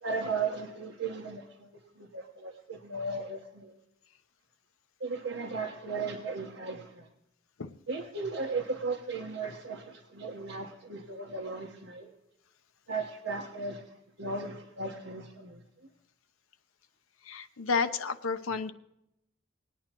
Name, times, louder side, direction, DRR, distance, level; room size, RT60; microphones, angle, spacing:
voice 1, 0.0-3.8 5.0-7.1 7.9-12.1 12.9-15.9, right 4 dB, 70° right, 0 dB, 1.2 m, -36 dB
voice 2, 17.3-18.7, left 5 dB, 85° left, 10 dB, 0.7 m, -31 dB
20.0 x 9.4 x 3.0 m, 0.82 s
head